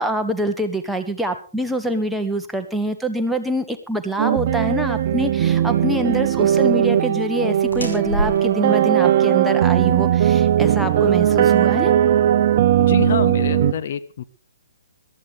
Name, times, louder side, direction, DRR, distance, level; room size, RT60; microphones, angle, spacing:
voice 1, 0.0-11.9, right 1 dB, ahead, 4 dB, 1.4 m, -25 dB
sound 1, 4.2-13.7, right 11 dB, 40° right, 0.8 m, -18 dB
sound 2, 6.8-12.2, equal, 80° left, 5.9 m, -33 dB
voice 2, 12.8-14.2, left 8 dB, 50° left, 12 dB, 1.2 m, -26 dB
22.0 x 13.5 x 3.5 m, 0.33 s
figure-of-eight pair, 125°, 0 cm